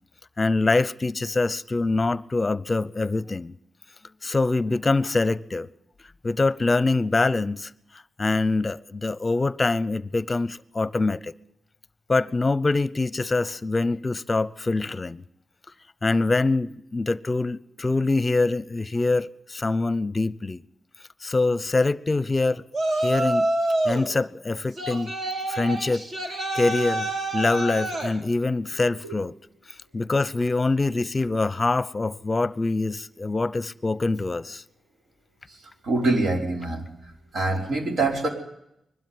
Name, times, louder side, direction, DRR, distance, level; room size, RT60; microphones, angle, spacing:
voice 1, 0.4-3.5 4.2-5.7 6.2-7.7 8.2-11.3 12.1-15.2 16.0-20.6 21.2-22.6 23.0-23.5 23.8-25.1 25.5-26.0 26.5-29.4 29.9-34.6, left 3 dB, 30° left, 0.7 m, -24 dB
Yell, 22.7-24.1 24.8-28.1, right 1 dB, 60° right, 5.5 m, -27 dB
voice 2, 35.8-36.9 37.3-38.3, right 2 dB, 75° right, 4.8 m, -24 dB
22.0 x 12.5 x 9.6 m
wide cardioid pair, 105°, 0 cm